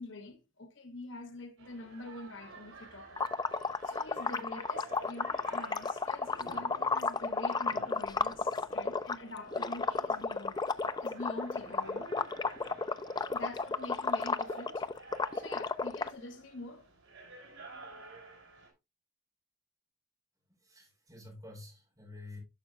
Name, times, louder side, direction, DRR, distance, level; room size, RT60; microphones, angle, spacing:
voice 1, 0.0-3.4 3.8-10.6 11.0-12.1 13.2-14.8 15.3-16.9, left 2 dB, 65° left, 1.1 m, -45 dB
sound 1, 1.6-18.7, right 3 dB, 75° right, 4.0 m, -51 dB
sound 2, 3.2-9.1 9.5-16.1, left 4 dB, 20° left, 0.3 m, -33 dB
voice 2, 20.7-22.4, left 2 dB, 20° right, 4.2 m, -49 dB
11.0 x 6.0 x 2.4 m
head